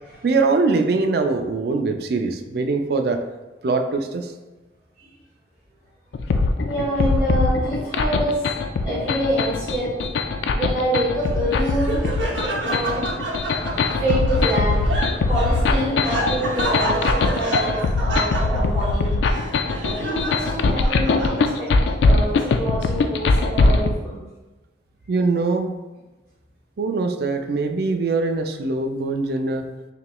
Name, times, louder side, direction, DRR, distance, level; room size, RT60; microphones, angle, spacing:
voice 1, 0.2-3.2 3.6-4.3 25.1-25.7 26.8-29.7, right 3 dB, 55° right, 5 dB, 0.4 m, -22 dB
sound 1, 6.1-23.9, left 3 dB, 70° left, 0.3 m, -21 dB
voice 2, 6.6-8.5 8.8-9.9 10.5-12.0 12.6-19.2 19.8-21.7 22.0-24.2, right 1 dB, 10° right, -11 dB, 1.0 m, -26 dB
Laughter, 11.2-21.8, right 1 dB, 80° right, 0.7 m, -29 dB
5.8 x 3.0 x 2.3 m, 1.1 s
head